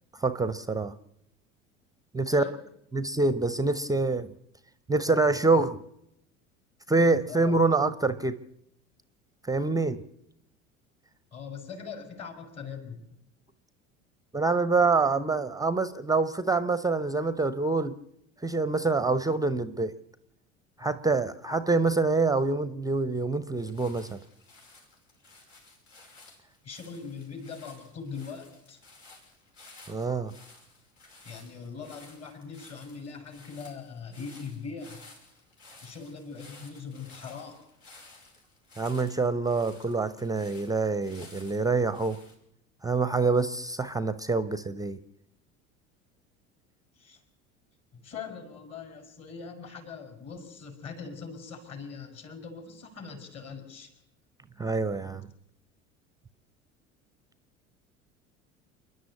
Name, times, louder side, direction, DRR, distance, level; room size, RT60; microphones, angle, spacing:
voice 1, 0.2-0.9 2.1-2.4 2.9-4.3 4.9-5.8 6.9-8.4 9.4-10.0 14.3-17.9 18.4-19.9 20.8-24.2 29.9-30.3 38.8-42.2 42.8-45.0 54.6-55.3, right 3 dB, 10° right, 15 dB, 0.7 m, -26 dB
voice 2, 7.3-7.6 11.3-13.1 26.6-28.8 31.2-35.0 35.8-37.6 47.0-47.2 47.9-53.9, left 5 dB, 40° left, 5 dB, 5.5 m, -41 dB
sound 1, 23.5-42.3, left 3 dB, 70° left, 5.8 m, -54 dB
28.5 x 11.0 x 8.4 m, 0.79 s
figure-of-eight pair, 70°, 41 cm